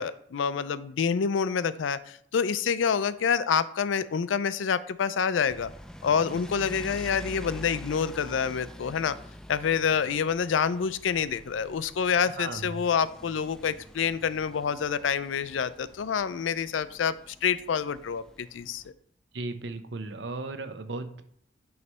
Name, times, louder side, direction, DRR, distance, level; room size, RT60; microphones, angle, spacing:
voice 1, 0.0-5.7 6.0-9.2 9.5-18.8, left 6 dB, 85° left, 15 dB, 0.4 m, -27 dB
sound 1, 5.5-18.9, equal, 5° left, 0.3 m, -46 dB
voice 2, 12.4-12.8 19.3-21.2, right 3 dB, 70° right, 9 dB, 0.7 m, -36 dB
9.4 x 3.2 x 5.4 m, 0.67 s
head